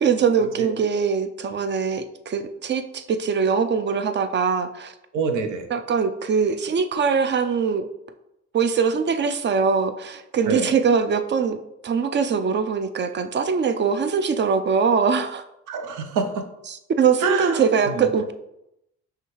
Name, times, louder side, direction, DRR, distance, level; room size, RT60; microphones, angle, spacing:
voice 1, 0.0-4.9 5.7-7.9 8.5-11.6 11.8-15.4 16.7-18.3, right 6 dB, 40° right, 9 dB, 0.4 m, -22 dB
voice 2, 5.1-5.6 10.4-10.7 15.7-16.4 17.2-17.6 17.9-18.2, right 5 dB, 90° right, 7 dB, 0.6 m, -25 dB
5.6 x 2.4 x 3.1 m, 0.85 s
cardioid pair, 90°, 30 cm